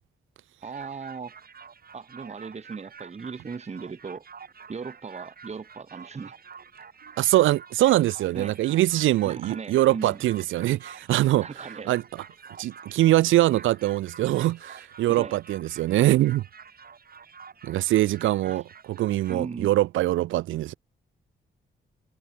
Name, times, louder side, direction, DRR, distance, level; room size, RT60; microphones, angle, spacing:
voice 1, 0.6-1.3 1.9-4.2 4.7-6.4 8.3-8.6 9.3-10.2 11.4-12.0 15.1-15.4 18.4-18.6 19.3-19.7, right 5 dB, 35° right, 1.1 m, -37 dB
sound 1, 0.6-19.4, right 6 dB, 50° right, 2.3 m, -48 dB
voice 2, 7.2-11.5 11.9-12.0 12.6-16.4 17.6-18.6 18.9-20.8, right 15 dB, 90° right, 0.4 m, -23 dB
cardioid pair, 75°, 20 cm